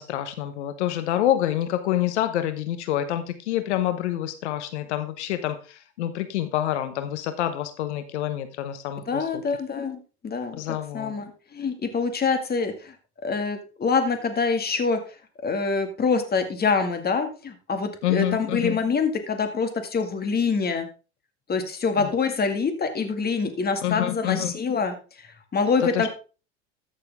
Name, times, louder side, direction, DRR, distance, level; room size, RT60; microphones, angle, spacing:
voice 1, 0.0-9.4 10.6-11.1 18.0-18.8 22.0-22.1 23.8-24.5 25.8-26.1, left 12 dB, 90° left, 11 dB, 1.0 m, -27 dB
voice 2, 9.1-10.6 10.9-12.9 13.2-15.0 15.4-20.9 21.5-24.9 25.5-26.1, left 5 dB, 30° left, 7 dB, 2.1 m, -25 dB
13.5 x 6.8 x 3.6 m, 0.34 s
supercardioid pair, 95°, 33 cm